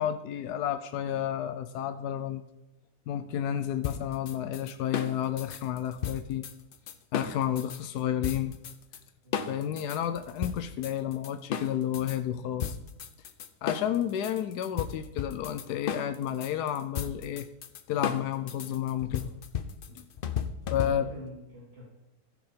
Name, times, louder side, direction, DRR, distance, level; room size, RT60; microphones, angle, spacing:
voice 1, 0.0-2.4 3.1-6.5 7.1-8.6 9.5-12.8 13.6-17.5 17.9-19.3 19.9-20.1 20.7-21.1, left 10 dB, 90° left, 11 dB, 1.2 m, -31 dB
sound 1, 3.8-7.8 8.2-9.0 9.3-12.2 12.6-21.3, left 7 dB, 60° left, 0.5 m, -35 dB
voice 2, 20.8-21.8, left 1 dB, 40° right, -9 dB, 3.7 m, -46 dB
14.5 x 5.1 x 5.1 m, 0.96 s
omnidirectional pair, 1.7 m